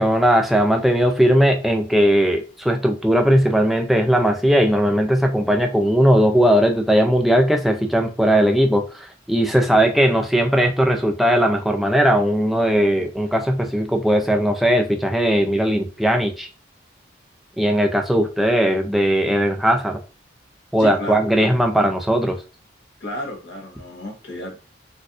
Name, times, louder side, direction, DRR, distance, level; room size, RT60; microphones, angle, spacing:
voice 1, 0.0-16.5 17.6-20.0 20.7-22.4, equal, ahead, 3 dB, 0.4 m, -18 dB
voice 2, 20.8-21.2 21.7-21.8 23.0-24.6, left 1 dB, 60° left, 0 dB, 1.2 m, -32 dB
4.2 x 2.6 x 2.4 m, 0.33 s
head